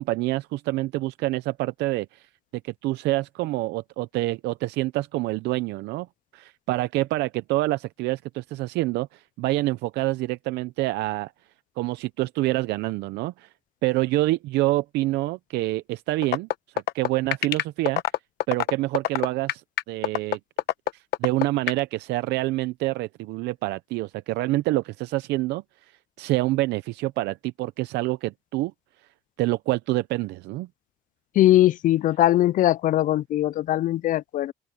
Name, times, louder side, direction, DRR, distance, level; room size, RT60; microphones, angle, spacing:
voice 1, 0.0-2.3 2.6-6.1 6.3-11.3 11.8-13.5 13.8-16.5 16.9-18.0 18.5-20.4 20.9-25.6 26.2-28.7 29.4-30.7, right 18 dB, 85° right, 0.6 m, -27 dB
sound 1, 16.2-21.8, left 14 dB, 75° left, 1.0 m, -24 dB
voice 2, 31.4-34.5, left 14 dB, 50° left, 0.4 m, -20 dB
cardioid pair, 110°, 17 cm